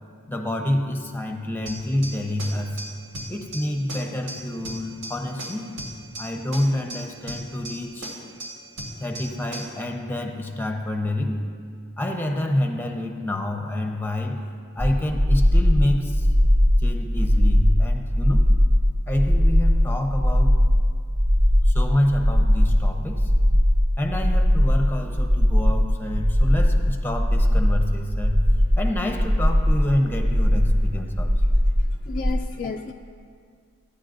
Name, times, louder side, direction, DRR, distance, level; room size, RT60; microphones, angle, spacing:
voice 1, 0.3-2.8 3.3-5.7 6.2-8.1 9.0-14.4 14.8-16.3 16.8-18.5 18.9-20.5 21.6-23.6 24.0-28.4 28.8-31.4 32.6-32.7, left 1 dB, 10° left, 4 dB, 0.7 m, -27 dB
sound 1, 1.7-9.9, right 1 dB, 85° right, 2.0 m, -38 dB
sound 2, 14.8-32.4, equal, 40° right, 0.8 m, -19 dB
voice 2, 32.0-32.9, left 4 dB, 35° left, 3 dB, 0.3 m, -31 dB
15.0 x 10.0 x 2.6 m, 2.1 s
head